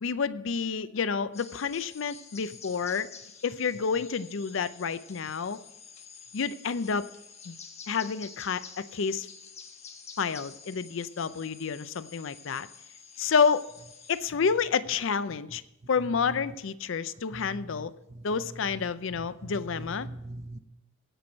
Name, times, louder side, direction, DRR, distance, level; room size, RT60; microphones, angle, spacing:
voice 1, 0.0-3.1 3.4-5.6 6.3-7.1 7.5-7.6 7.9-9.3 10.2-12.7 13.2-13.7 14.1-15.6 15.9-17.9 18.2-20.1, left 5 dB, 70° left, 15 dB, 0.5 m, -29 dB
sound 1, 1.3-14.3, left 6 dB, 30° left, 1.2 m, -49 dB
voice 2, 17.3-18.2 18.5-18.9 19.2-20.6, right 1 dB, 35° right, 10 dB, 0.7 m, -42 dB
16.0 x 6.1 x 5.2 m, 0.88 s
head